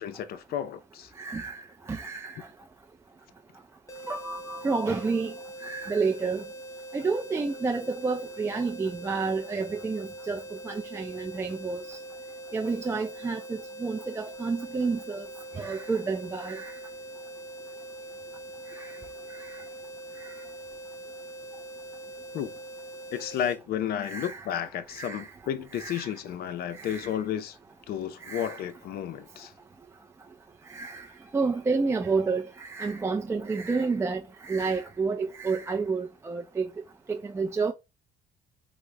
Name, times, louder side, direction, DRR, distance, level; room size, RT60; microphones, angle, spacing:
voice 1, 0.0-1.1 22.3-22.6 23.1-27.6 27.9-29.5, left 9 dB, 65° left, 0.5 m, -32 dB
voice 2, 1.2-2.5 4.1-5.3 5.6-6.4 6.9-12.0 12.5-15.3 15.6-16.8 18.8-19.0 19.4-19.6 20.2-20.3 24.0-24.5 24.9-25.3 25.7-26.1 26.7-27.2 28.2-28.7 30.7-31.1 31.3-36.7 37.1-37.7, right 4 dB, 15° right, 0.3 m, -30 dB
sound 1, 3.9-23.6, right 1 dB, 20° left, 0.8 m, -43 dB
3.6 x 2.0 x 3.2 m
cardioid pair, 110°, 17 cm